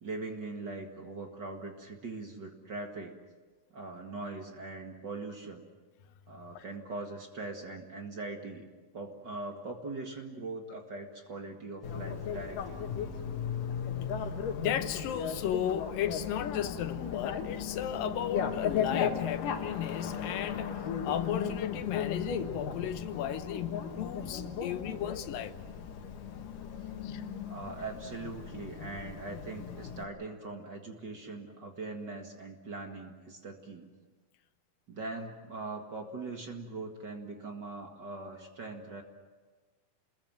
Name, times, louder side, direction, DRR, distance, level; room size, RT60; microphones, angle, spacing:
voice 1, 0.0-3.2 3.7-5.6 6.3-8.7 8.9-12.9 27.5-33.9 34.9-39.0, right 3 dB, 40° right, 2.1 m, -41 dB
Bicycle, 11.8-30.0, left 7 dB, 70° left, 3.3 m, -36 dB
voice 2, 14.6-20.7 21.0-25.6 27.0-27.2, left 10 dB, 90° left, 2.9 m, -35 dB
29.0 x 21.0 x 7.6 m
omnidirectional pair, 3.9 m